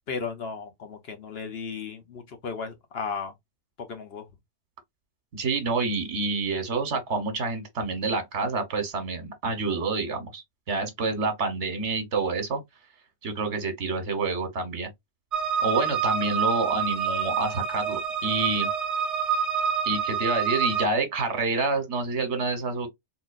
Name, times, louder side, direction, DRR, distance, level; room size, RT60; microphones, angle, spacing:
voice 1, 0.1-3.3 3.8-4.2, left 5 dB, 60° left, 1.1 m, -35 dB
voice 2, 5.3-12.6 13.2-14.9 15.6-18.7 19.8-22.9, right 3 dB, 70° right, 1.4 m, -28 dB
sound 1, 15.3-20.9, right 6 dB, 40° right, 0.5 m, -27 dB
3.8 x 2.9 x 2.4 m
omnidirectional pair, 1.2 m